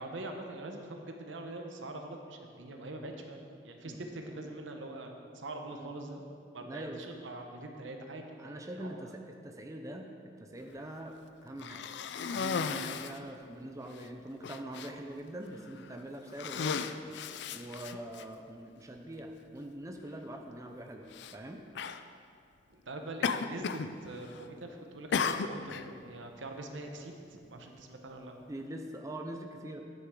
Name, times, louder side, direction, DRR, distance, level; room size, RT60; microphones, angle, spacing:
voice 1, 0.0-6.2 6.5-9.1 22.7-28.3, right 2 dB, 80° right, 4 dB, 1.0 m, -43 dB
voice 2, 6.6-7.0 8.4-9.1 9.4-10.1 10.4-11.2 11.4-11.9 12.3-16.9 17.5-21.6 28.5-29.8, right 1 dB, 15° right, 3 dB, 0.5 m, -43 dB
Cough, 11.6-13.2 13.9-14.0 14.4-14.9 15.7-15.9 16.3-18.2 19.2-19.3 21.1-21.3 21.7-22.0 23.2-23.9 24.2-24.6 25.1-25.9, left 6 dB, 65° left, 0.4 m, -35 dB
9.6 x 9.0 x 3.8 m, 2.4 s
head